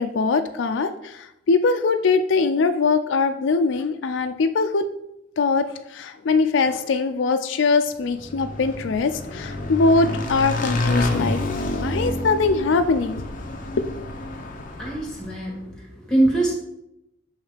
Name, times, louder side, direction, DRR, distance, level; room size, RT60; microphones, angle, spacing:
voice 1, 0.0-4.8 5.4-11.4 11.8-13.2, left 4 dB, 85° left, 8 dB, 0.4 m, -22 dB
Motorcycle / Engine, 8.0-15.4, left 2 dB, 45° left, 0.9 m, -28 dB
voice 2, 14.8-16.5, right 1 dB, 5° left, -4 dB, 2.0 m, -23 dB
7.2 x 3.2 x 5.0 m, 0.83 s
head